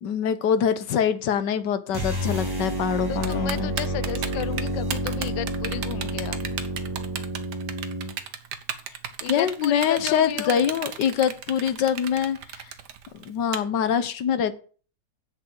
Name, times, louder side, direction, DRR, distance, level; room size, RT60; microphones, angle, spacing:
voice 1, 0.0-3.7 9.3-12.6 13.1-14.5, left 8 dB, 75° left, 1.6 m, -24 dB
sound 1, 1.9-8.2, right 1 dB, 10° right, 2.9 m, -29 dB
voice 2, 3.1-6.4 9.2-10.9, left 13 dB, 90° left, 1.4 m, -33 dB
Typing, 3.2-13.6, right 8 dB, 70° right, 1.6 m, -33 dB
8.0 x 6.9 x 8.0 m
omnidirectional pair, 1.9 m